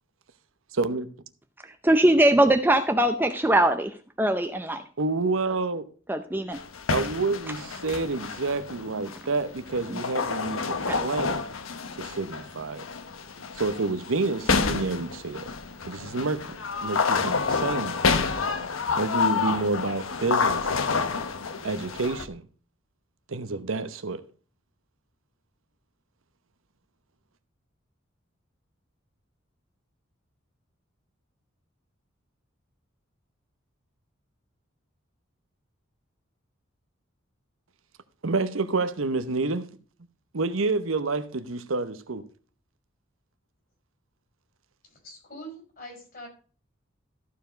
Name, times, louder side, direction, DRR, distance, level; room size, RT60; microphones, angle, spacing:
voice 1, 0.7-1.1 5.0-5.8 6.9-11.4 12.0-12.8 13.5-15.5 15.8-18.0 19.0-20.8 21.6-22.4 23.3-24.2 38.2-39.7 40.3-42.2, right 3 dB, 85° right, 0.9 m, -28 dB
voice 2, 1.6-4.8 6.1-6.6 9.9-10.0 10.9-11.0, right 1 dB, 10° right, 0.6 m, -22 dB
sound 1, 6.5-22.3, left 5 dB, 85° left, 1.0 m, -29 dB
voice 3, 44.8-46.3, equal, 45° left, 4.5 m, -43 dB
14.0 x 4.8 x 5.0 m
head